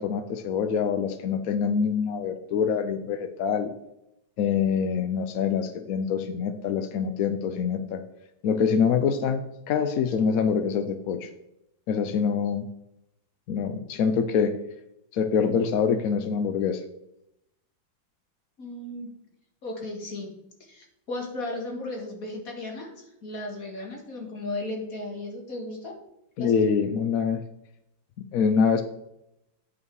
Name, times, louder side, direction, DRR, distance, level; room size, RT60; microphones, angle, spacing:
voice 1, 0.0-3.7 4.4-8.0 8.4-11.3 11.9-12.7 13.5-14.5 15.1-16.8 26.4-27.4 28.3-28.8, left 6 dB, 70° left, 8 dB, 0.8 m, -25 dB
voice 2, 18.6-19.1 19.6-20.3 20.6-26.0 26.4-26.6, left 2 dB, 45° left, 1 dB, 2.2 m, -35 dB
9.4 x 5.5 x 4.6 m, 0.83 s
omnidirectional pair, 2.1 m